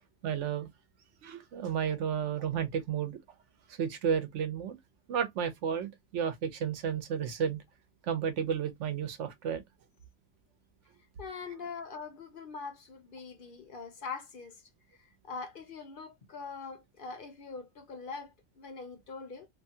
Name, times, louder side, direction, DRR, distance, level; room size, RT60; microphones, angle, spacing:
voice 1, 0.2-0.7 1.2-3.2 3.7-4.8 5.1-7.6 8.0-9.6, right 7 dB, 85° right, 1.0 m, -32 dB
voice 2, 11.2-14.6 15.0-19.5, left 4 dB, 55° left, 0.8 m, -43 dB
2.9 x 2.3 x 2.7 m
omnidirectional pair, 1.2 m